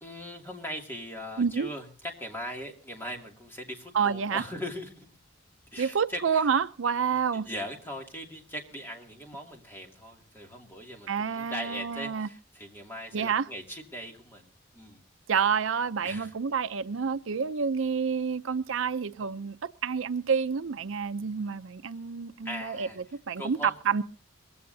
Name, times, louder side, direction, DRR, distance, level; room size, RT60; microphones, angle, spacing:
voice 1, 0.0-5.1 5.7-6.5 7.1-15.0 16.0-16.3 22.4-23.8, equal, 10° left, 2.4 m, -40 dB
voice 2, 1.4-1.7 3.9-4.4 5.8-7.5 11.1-12.3 13.1-13.5 15.3-22.9 23.3-24.0, right 6 dB, 75° right, 0.6 m, -28 dB
21.0 x 15.5 x 2.7 m
head